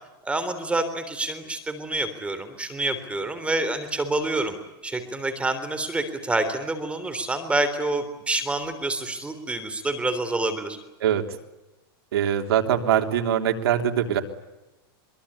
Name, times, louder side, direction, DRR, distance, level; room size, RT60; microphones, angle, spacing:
voice 1, 0.2-4.6 4.8-10.8, right 2 dB, 10° right, 10 dB, 3.4 m, -27 dB
voice 2, 11.0-11.4 12.1-14.2, right 9 dB, 85° right, 5 dB, 3.2 m, -23 dB
23.5 x 23.0 x 9.9 m, 1.0 s
supercardioid pair, 140°, 13 cm